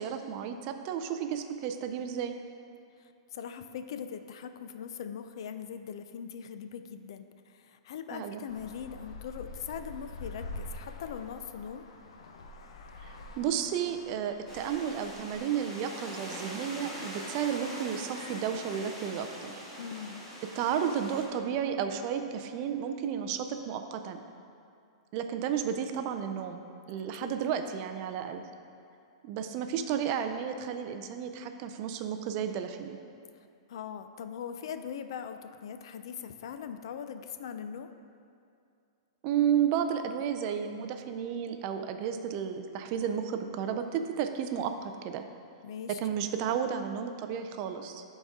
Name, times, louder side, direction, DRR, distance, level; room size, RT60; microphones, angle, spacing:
voice 1, 0.0-2.4 8.1-8.4 13.0-19.6 20.5-24.2 25.1-26.6 26.9-28.4 29.2-33.0 39.2-45.2 45.9-48.0, right 8 dB, 30° right, 7 dB, 0.3 m, -32 dB
voice 2, 3.0-11.8 19.8-20.2 27.2-27.4 33.7-37.9 45.6-46.0, left 7 dB, 55° left, 9 dB, 0.4 m, -41 dB
Traffic noise roadway noise, 8.5-15.4, left 2 dB, 80° left, 0.7 m, -45 dB
sound 1, 14.5-21.2, equal, 15° left, 1.3 m, -43 dB
12.0 x 4.1 x 3.6 m, 2.4 s
supercardioid pair, 170°, 3 cm